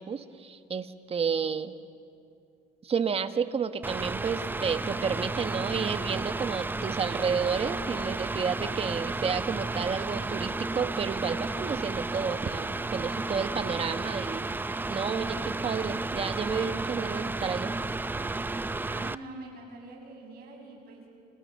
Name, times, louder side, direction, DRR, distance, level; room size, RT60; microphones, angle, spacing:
voice 1, 0.0-1.7 2.8-14.5 14.9-17.7, right 6 dB, 35° right, 9 dB, 1.4 m, -31 dB
Mechanical fan, 3.8-19.1, right 3 dB, 10° right, 0.6 m, -32 dB
voice 2, 18.8-21.1, right 2 dB, 65° right, 0 dB, 7.9 m, -45 dB
28.5 x 28.5 x 6.5 m, 2.4 s
cardioid pair, 110°, 17 cm